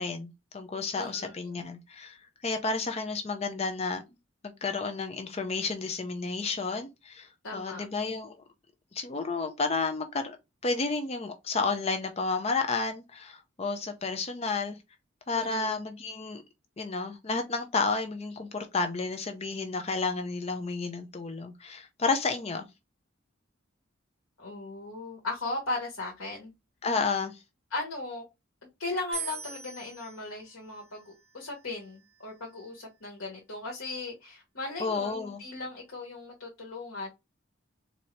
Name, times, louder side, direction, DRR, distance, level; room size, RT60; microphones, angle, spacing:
voice 1, 0.0-4.0 4.4-8.4 8.9-10.4 10.6-14.8 15.3-16.4 16.8-22.7 26.8-27.4 34.8-35.4, left 4 dB, 30° left, 0.5 m, -31 dB
voice 2, 1.0-1.5 7.4-7.8 15.3-15.8 24.4-26.5 27.7-28.2 28.8-37.1, left 2 dB, 75° left, 1.3 m, -37 dB
sound 1, 29.1-32.4, right 6 dB, 75° right, 2.2 m, -43 dB
4.1 x 2.7 x 3.1 m
head